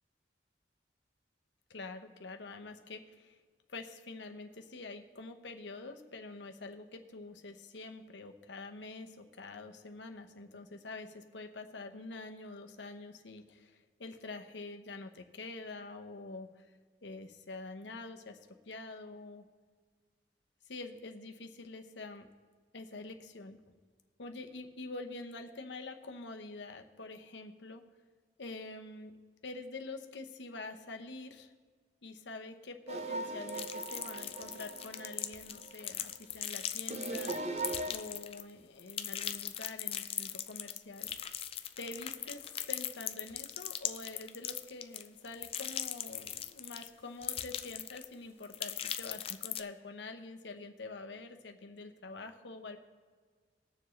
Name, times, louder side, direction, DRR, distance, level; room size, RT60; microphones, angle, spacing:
voice 1, 1.7-3.4 3.7-16.7 17.0-18.4 18.6-19.4 20.6-22.3 22.7-23.6 24.2-27.8 28.4-29.1 29.4-31.5 32.0-37.6 37.9-41.1 41.8-52.8, left 3 dB, 80° left, 5 dB, 0.9 m, -46 dB
sound 1, 32.9-36.2 36.9-37.9, right 2 dB, 35° right, 0.7 m, -39 dB
sound 2, 33.5-38.5 38.8-46.9 47.2-48.1 48.4-49.6, left 10 dB, 35° left, 0.4 m, -39 dB
20.5 x 7.0 x 3.2 m, 1.5 s
head